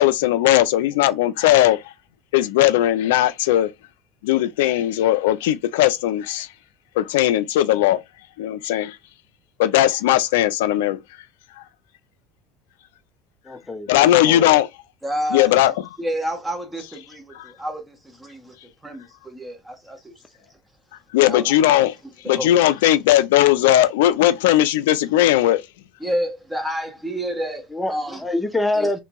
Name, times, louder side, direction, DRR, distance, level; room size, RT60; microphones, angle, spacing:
voice 1, 0.0-1.9 2.3-3.7 4.2-6.5 7.0-8.0 8.4-9.0 9.6-11.0 11.6-11.7 13.9-14.7 15.3-15.7 21.1-21.9 22.3-25.6, left 13 dB, 90° left, 0.3 m, -18 dB
voice 2, 13.5-14.6 27.7-27.9 28.2-29.0, left 2 dB, 10° left, 0.6 m, -25 dB
voice 3, 15.0-15.6 16.0-18.6 18.8-20.1 21.1-21.5 22.2-22.5 26.0-28.2 28.7-28.9, equal, 10° right, 1.2 m, -29 dB
2.9 x 2.6 x 2.2 m
supercardioid pair, 90°, 0 cm